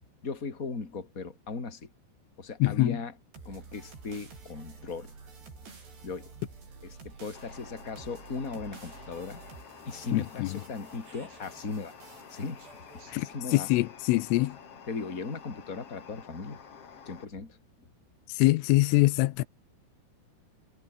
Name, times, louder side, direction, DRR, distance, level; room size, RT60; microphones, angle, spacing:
voice 1, 0.2-1.9 2.4-3.1 3.5-5.1 6.0-6.3 6.8-9.4 9.9-11.9 12.3-12.7 13.1-13.7 14.9-16.6 17.1-17.9, left 4 dB, 20° left, 3.5 m, -38 dB
voice 2, 2.6-3.0 10.1-10.6 13.1-13.3 13.5-14.6 18.4-19.4, left 19 dB, 90° left, 3.5 m, -24 dB
sound 1, 3.3-13.4, right 4 dB, 55° right, 9.7 m, -50 dB
sound 2, 7.3-17.2, left 7 dB, 40° left, 2.5 m, -50 dB
omnidirectional pair, 5.7 m